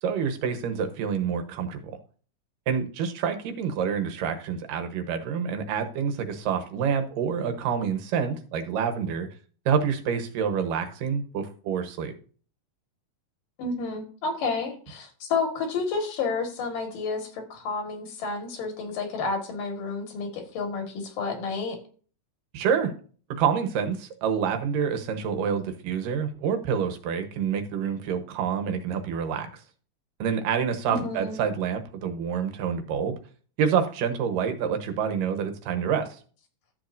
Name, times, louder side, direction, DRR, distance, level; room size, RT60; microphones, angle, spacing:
voice 1, 0.0-2.0 2.7-9.3 9.7-12.1 22.5-22.9 23.3-29.6 30.2-33.1 33.6-36.1, right 7 dB, 90° right, 7 dB, 2.8 m, -27 dB
voice 2, 13.6-21.8 30.9-31.4, left 4 dB, 90° left, 5 dB, 3.5 m, -30 dB
13.0 x 7.4 x 2.6 m, 0.41 s
omnidirectional pair, 3.7 m